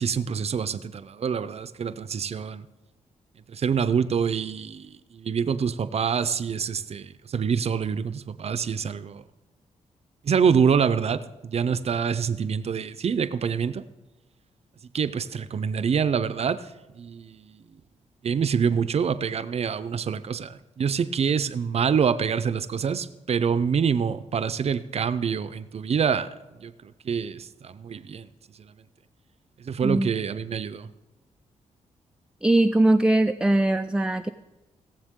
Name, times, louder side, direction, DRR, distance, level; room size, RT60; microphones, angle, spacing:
voice 1, 0.0-2.7 3.5-9.2 10.2-13.8 14.9-17.6 18.2-26.3 26.6-28.3 28.6-28.7 29.6-30.9, right 6 dB, 50° right, 13 dB, 0.6 m, -26 dB
voice 2, 32.4-34.3, right 1 dB, 5° right, 8 dB, 0.4 m, -21 dB
19.5 x 7.2 x 3.7 m, 1.1 s
cardioid pair, 80°, 13 cm